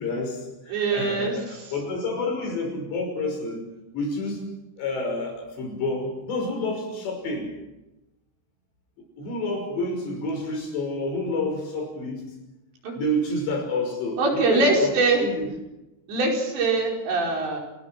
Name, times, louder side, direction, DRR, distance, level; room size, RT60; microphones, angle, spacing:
voice 1, 0.0-3.7 3.9-4.4 4.8-7.5 9.2-12.3 13.0-14.2 14.5-15.5, left 2 dB, 75° left, 3 dB, 8.0 m, -29 dB
voice 2, 0.7-1.7 12.8-12.9 14.2-15.2 16.1-17.6, right 3 dB, 80° right, 0 dB, 7.3 m, -23 dB
27.5 x 21.0 x 6.0 m, 0.97 s
omnidirectional pair, 5.0 m